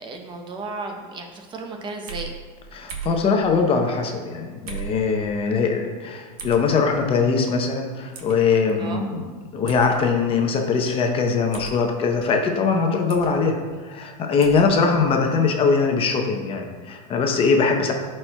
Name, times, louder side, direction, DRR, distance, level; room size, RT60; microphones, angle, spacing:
voice 1, 0.0-2.3 8.8-9.0, right 2 dB, 25° right, 3 dB, 0.7 m, -34 dB
sound 1, 2.1-2.3 2.9-3.2 4.7-5.0 6.4-6.6 8.1-8.4 9.7-9.9 11.5-11.8 13.1-13.3 14.4-14.7, right 7 dB, 80° right, 1.1 m, -35 dB
voice 2, 2.7-9.2 9.5-17.9, left 5 dB, 30° left, 3 dB, 0.7 m, -21 dB
11.0 x 4.4 x 2.2 m, 1.4 s
supercardioid pair, 135°, 19 cm